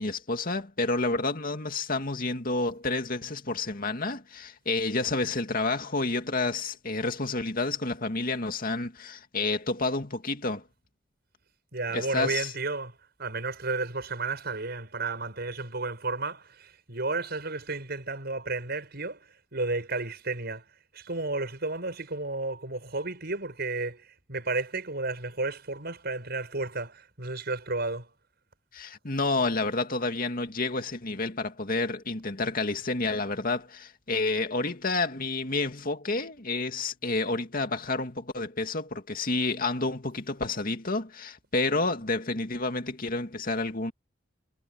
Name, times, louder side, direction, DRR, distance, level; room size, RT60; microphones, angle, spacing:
voice 1, 0.0-10.6 11.9-12.5 28.7-43.9, left 3 dB, 50° left, 2.3 m, -29 dB
voice 2, 11.7-19.2 19.5-20.6 20.9-28.1, right 3 dB, 55° right, 6.4 m, -32 dB
head